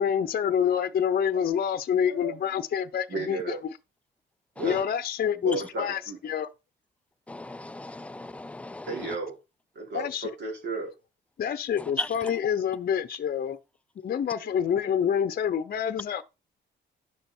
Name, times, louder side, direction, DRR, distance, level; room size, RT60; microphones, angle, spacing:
voice 1, 0.0-3.7 4.6-6.5 9.9-10.3 11.4-13.6 14.0-16.2, left 8 dB, 50° left, 0.8 m, -27 dB
voice 2, 2.1-2.4 3.1-3.6 4.6-4.8 5.4-6.2 8.9-9.3 9.8-10.9 14.4-14.5, right 2 dB, 60° right, 5.2 m, -33 dB
voice 3, 7.3-8.9 12.0-12.1, left 2 dB, 5° left, 0.4 m, -36 dB
10.0 x 6.8 x 4.4 m
cardioid pair, 90°, 20 cm